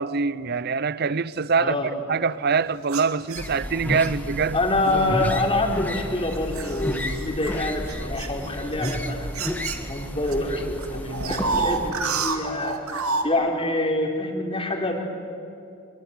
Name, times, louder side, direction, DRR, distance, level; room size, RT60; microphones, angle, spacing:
voice 1, 0.0-4.6 4.9-5.2, right 5 dB, 45° right, 0.6 m, -24 dB
voice 2, 1.6-1.9 4.5-9.5 9.9-12.8 13.2-15.0, left 2 dB, 25° left, 3.6 m, -26 dB
sound 1, 2.8-4.1 4.9-5.1 5.7-10.3 10.6-13.3, right 4 dB, 85° right, 2.4 m, -30 dB
sound 2, 3.4-11.9, equal, 5° left, 1.6 m, -31 dB
24.5 x 23.0 x 9.9 m
head